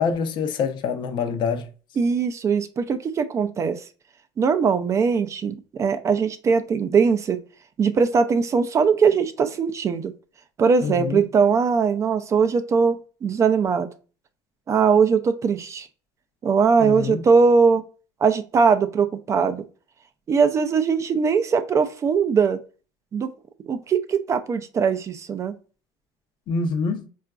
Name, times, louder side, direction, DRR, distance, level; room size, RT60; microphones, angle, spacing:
voice 1, 0.0-1.7 10.8-11.3 16.8-17.2 26.5-27.1, left 5 dB, 55° left, 0.5 m, -25 dB
voice 2, 2.0-3.8 4.4-7.4 7.8-10.1 10.6-13.9 14.7-15.9 16.4-17.8 18.2-19.6 20.3-22.6 23.1-23.3 23.7-25.5, right 5 dB, 30° right, 0.3 m, -20 dB
3.8 x 2.3 x 2.2 m
cardioid pair, 120°, 10 cm